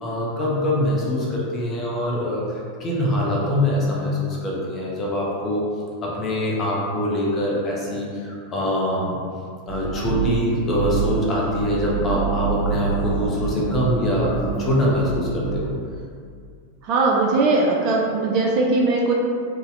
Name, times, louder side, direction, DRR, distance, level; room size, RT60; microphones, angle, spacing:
voice 1, 0.0-5.7 6.0-9.2 9.7-15.7, left 1 dB, 25° left, -4 dB, 0.5 m, -24 dB
sound 1, 9.7-15.6, right 5 dB, 90° left, 0.5 m, -26 dB
voice 2, 16.8-19.1, right 3 dB, 40° right, -2 dB, 0.3 m, -19 dB
2.5 x 2.0 x 2.5 m, 2.2 s
figure-of-eight pair, 90°, 0 cm